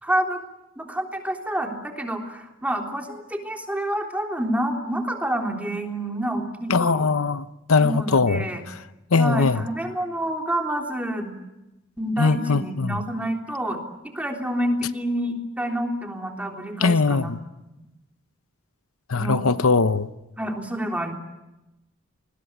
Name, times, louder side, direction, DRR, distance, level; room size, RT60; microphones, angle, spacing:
voice 1, 0.0-0.4 0.8-7.1 7.8-8.6 9.2-11.3 12.0-13.8 14.1-17.3 19.1-19.4 20.4-21.1, right 1 dB, 5° right, 3.4 m, -28 dB
voice 2, 6.7-8.5 9.1-9.6 12.2-13.0 16.8-17.4 19.1-20.1, left 4 dB, 85° left, 0.9 m, -21 dB
27.5 x 21.0 x 8.5 m
head